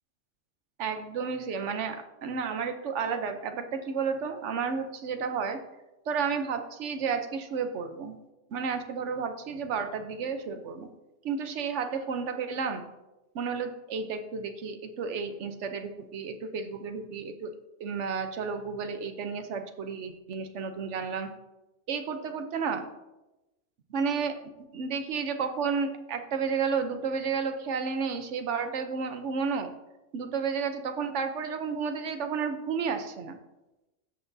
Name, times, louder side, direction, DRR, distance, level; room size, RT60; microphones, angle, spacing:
voice 1, 0.8-5.6 6.1-8.2 8.5-10.9 11.2-12.8 13.3-17.5 17.8-21.3 21.9-22.8 23.9-24.4 24.7-29.7 30.1-33.4, right 5 dB, 75° right, 7 dB, 1.1 m, -32 dB
17.0 x 5.9 x 2.7 m, 1.0 s
omnidirectional pair, 1.3 m